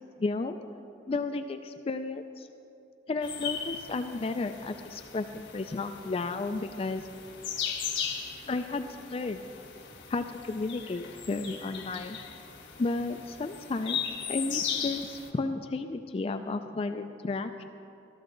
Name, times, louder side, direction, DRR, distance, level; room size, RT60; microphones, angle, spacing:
voice 1, 0.2-0.6 1.1-2.5 3.1-7.0 8.5-9.5 10.1-12.2 12.8-14.0 14.3-17.6, left 3 dB, 30° left, 8 dB, 0.3 m, -33 dB
sound 1, 3.2-15.3, left 7 dB, 85° left, 1.4 m, -38 dB
13.5 x 13.0 x 3.9 m, 2.6 s
head